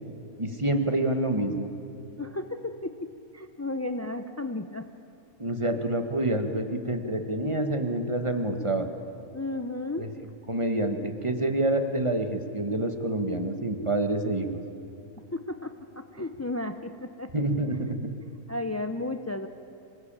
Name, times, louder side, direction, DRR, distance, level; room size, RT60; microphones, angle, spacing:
voice 1, 0.4-1.7 5.4-8.9 10.0-10.1 10.5-14.6 17.3-18.0, right 1 dB, 20° right, 6 dB, 1.5 m, -27 dB
voice 2, 2.2-3.1 3.3-4.9 5.7-5.8 9.3-10.1 15.3-17.3 18.5-19.5, left 2 dB, 25° left, 8 dB, 0.3 m, -33 dB
27.0 x 19.0 x 8.9 m, 2.7 s
omnidirectional pair, 1.5 m